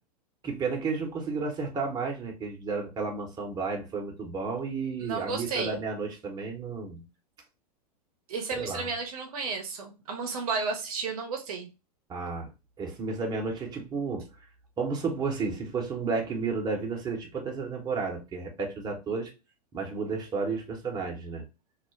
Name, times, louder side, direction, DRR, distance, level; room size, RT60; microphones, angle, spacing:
voice 1, 0.4-7.0 8.5-8.9 12.1-12.5 12.8-14.3 14.8-19.3 19.7-21.4, right 4 dB, 20° right, 0.8 m, -32 dB
voice 2, 5.0-5.8 8.3-11.7, right 4 dB, 65° right, 0.7 m, -33 dB
2.3 x 2.1 x 3.1 m
hypercardioid pair, 100°, 20 cm